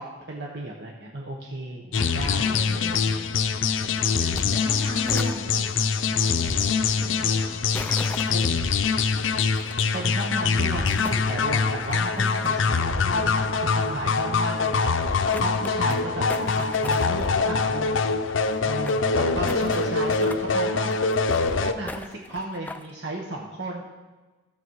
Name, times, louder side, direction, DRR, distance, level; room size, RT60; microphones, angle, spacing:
voice 1, 0.0-2.7 8.3-8.6 9.9-16.2 16.8-18.1 18.6-21.0 21.6-23.8, right 2 dB, 60° right, -2 dB, 1.3 m, -34 dB
voice 2, 1.8-5.7 6.0-7.6 15.5-16.6 18.6-19.6, equal, 40° right, -1 dB, 2.2 m, -39 dB
sound 1, 1.9-21.7, left 4 dB, 80° left, 0.6 m, -24 dB
sound 2, 4.2-4.4 4.7-5.4 7.7-8.6 9.6-9.7 10.7-11.3 11.8-12.7 13.0-13.1 14.0-14.1 14.5-14.6 14.9-15.0 15.3-16.0 16.3-17.3 17.5-17.6 17.8-17.9 18.1-19.0 19.5-20.4 20.9-21.5 21.9-22.9, left 2 dB, 10° left, 0.4 m, -38 dB
15.0 x 7.2 x 4.8 m, 1.2 s
head